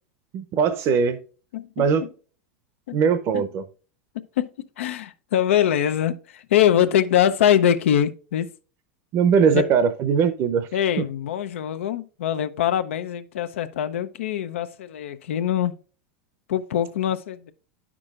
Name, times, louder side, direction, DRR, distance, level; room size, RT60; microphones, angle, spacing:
voice 1, 0.3-1.2 1.8-2.1 2.9-3.6 9.1-10.7 11.0-11.1, right 6 dB, 40° right, 0.6 m, -20 dB
voice 2, 1.5-1.9 2.9-3.0 3.3-3.5 4.1-4.5 4.8-8.5 9.5-9.6 10.7-15.7 16.5-17.5, left 10 dB, 85° left, 0.6 m, -23 dB
9.9 x 6.1 x 2.4 m
supercardioid pair, 120°, 7 cm